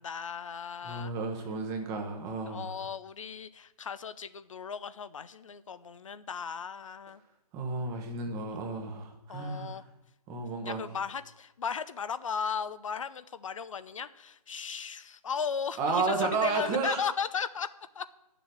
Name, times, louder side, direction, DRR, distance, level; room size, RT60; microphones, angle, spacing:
voice 1, 0.0-1.1 2.5-7.2 9.3-9.8 10.7-17.7 17.9-18.1, left 6 dB, 55° left, 14 dB, 0.7 m, -36 dB
voice 2, 0.8-2.7 7.5-9.8 10.3-10.8 15.8-17.1, right 4 dB, 15° right, 3 dB, 1.1 m, -32 dB
10.5 x 7.0 x 7.6 m, 0.93 s
figure-of-eight pair, 150°, 20 cm